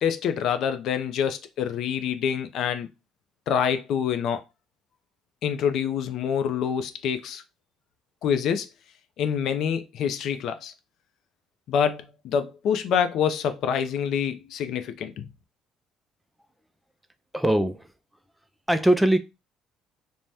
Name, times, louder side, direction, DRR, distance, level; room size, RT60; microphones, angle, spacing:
voice 1, 0.0-2.9 3.5-4.4 5.4-7.4 8.2-8.7 9.2-10.7 11.7-15.3, left 8 dB, 65° left, 0.4 m, -26 dB
voice 2, 17.3-17.9 18.7-19.2, right 1 dB, 5° right, 0.4 m, -21 dB
2.6 x 2.1 x 3.3 m
cardioid pair, 90°, 0 cm